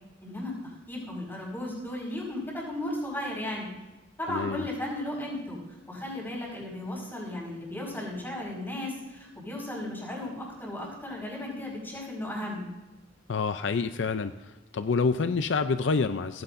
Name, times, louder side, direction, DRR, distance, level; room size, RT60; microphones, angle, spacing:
voice 1, 0.2-0.5 0.9-3.7 4.2-5.6 5.9-12.7, left 1 dB, 10° left, -3 dB, 5.1 m, -35 dB
voice 2, 4.3-4.7 13.3-14.3 14.7-16.4, left 4 dB, 65° left, 10 dB, 0.5 m, -27 dB
17.5 x 15.5 x 2.6 m, 1.1 s
head